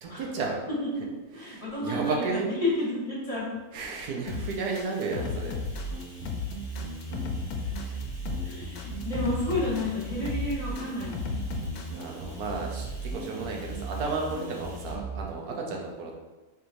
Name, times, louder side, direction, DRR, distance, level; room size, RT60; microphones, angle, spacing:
voice 1, 0.0-0.6 1.4-2.5 3.7-5.6 7.8-8.0 12.0-16.2, right 4 dB, 85° right, 0 dB, 1.2 m, -33 dB
voice 2, 0.8-3.5 4.1-4.2 7.1-7.2 7.6-7.7 8.4-11.3 15.4-15.7, left 1 dB, 25° left, -9 dB, 1.3 m, -32 dB
Bathtub (filling or washing), 4.2-14.9, equal, 5° right, 0.8 m, -53 dB
sound 1, 4.3-12.0, left 5 dB, 80° left, 1.1 m, -34 dB
sound 2, 5.6-15.2, right 3 dB, 60° right, 0.7 m, -37 dB
4.5 x 3.4 x 2.6 m, 1.2 s
omnidirectional pair, 1.6 m